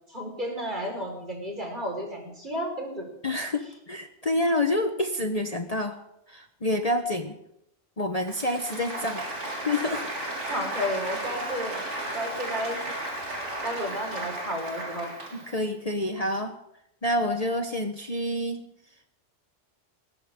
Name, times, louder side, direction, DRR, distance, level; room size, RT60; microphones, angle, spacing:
voice 1, 0.1-3.1 10.5-11.8 12.1-12.8 13.6-15.1, equal, 40° right, 1 dB, 5.1 m, -32 dB
voice 2, 3.2-6.0 6.3-7.4 8.0-9.3 9.6-10.1 15.3-16.6 17.0-18.7, left 1 dB, 30° left, 4 dB, 1.2 m, -28 dB
Applause, 8.2-15.6, right 1 dB, 70° right, 4.4 m, -34 dB
20.0 x 18.5 x 3.8 m, 0.79 s
omnidirectional pair, 1.3 m